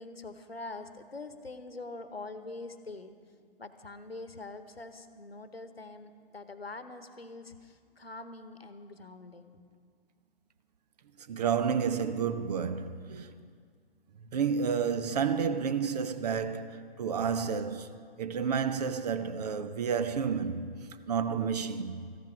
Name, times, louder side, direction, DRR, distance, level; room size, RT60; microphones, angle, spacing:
voice 1, 0.0-3.2 3.6-9.6, left 3 dB, 80° left, 1.0 m, -44 dB
voice 2, 11.3-13.3 14.3-17.9 18.2-20.7 21.1-22.0, right 6 dB, 45° right, 0.7 m, -30 dB
14.0 x 10.5 x 6.0 m
figure-of-eight pair, 120°, 30 cm